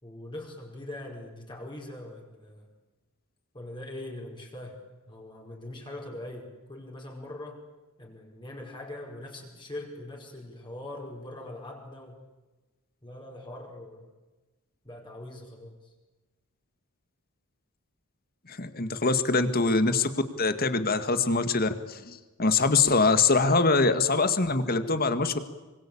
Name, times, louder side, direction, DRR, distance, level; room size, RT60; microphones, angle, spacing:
voice 1, 0.0-2.7 3.5-4.8 5.1-7.6 8.0-12.2 13.0-14.1 14.8-15.9, left 1 dB, 20° left, -1 dB, 5.0 m, -42 dB
voice 2, 18.5-20.1 20.4-25.4, left 3 dB, 45° left, 10 dB, 2.0 m, -24 dB
26.0 x 25.0 x 8.7 m, 1.2 s
head